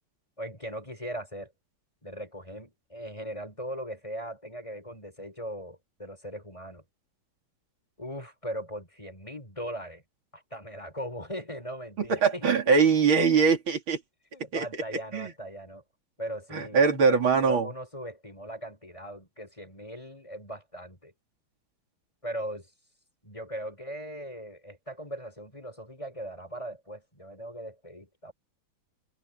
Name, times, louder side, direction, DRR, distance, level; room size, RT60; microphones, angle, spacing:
voice 1, 0.4-1.5 2.0-6.8 8.0-10.0 10.3-12.5 14.3-15.8 16.2-17.1 17.4-21.1 22.2-22.7 23.2-28.3, equal, 15° left, 5.6 m, -39 dB
voice 2, 12.1-14.0 14.5-14.7 15.1-15.3 16.5-17.7, right 5 dB, 85° right, 3.5 m, -22 dB
open air
omnidirectional pair, 2.2 m